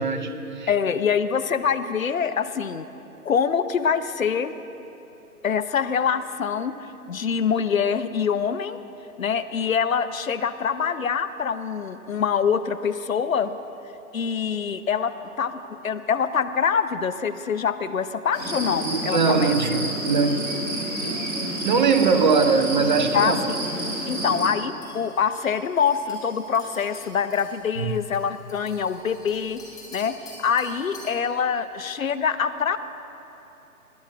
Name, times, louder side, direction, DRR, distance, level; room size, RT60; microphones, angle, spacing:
voice 1, 0.0-0.7 18.8-20.5 21.0-21.3 21.6-23.4 27.8-28.0, right 5 dB, 30° right, 8 dB, 0.8 m, -21 dB
voice 2, 0.7-2.9 3.2-4.5 5.4-6.7 7.1-8.8 9.2-13.6 14.1-19.5 23.1-23.6 24.1-29.6 29.9-32.8, left 7 dB, 65° left, 13 dB, 0.8 m, -25 dB
sound 1, 18.3-24.5, right 1 dB, 60° right, 4.3 m, -29 dB
sound 2, 24.8-31.2, left 2 dB, 10° left, 2.4 m, -47 dB
20.0 x 7.3 x 7.8 m, 3.0 s
figure-of-eight pair, 135°, 44 cm